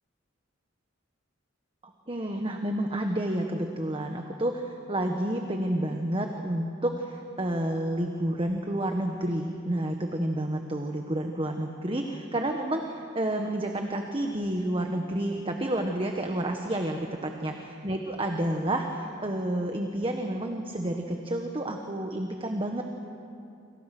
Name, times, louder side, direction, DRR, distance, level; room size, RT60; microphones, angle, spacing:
voice 1, 1.8-22.9, right 1 dB, 30° right, 3 dB, 1.4 m, -30 dB
28.5 x 27.0 x 6.1 m, 2.6 s
head